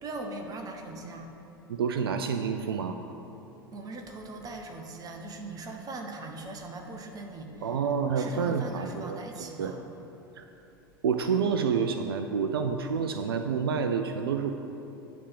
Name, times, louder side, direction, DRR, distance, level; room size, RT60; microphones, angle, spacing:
voice 1, 0.0-1.3 3.7-7.8 8.1-9.8, right 2 dB, 30° right, 3 dB, 1.0 m, -40 dB
voice 2, 1.7-3.0 7.6-9.7 10.4-10.5 11.0-14.5, right 6 dB, 75° right, 7 dB, 0.4 m, -28 dB
9.8 x 3.4 x 6.7 m, 2.9 s
figure-of-eight pair, 85°, 12 cm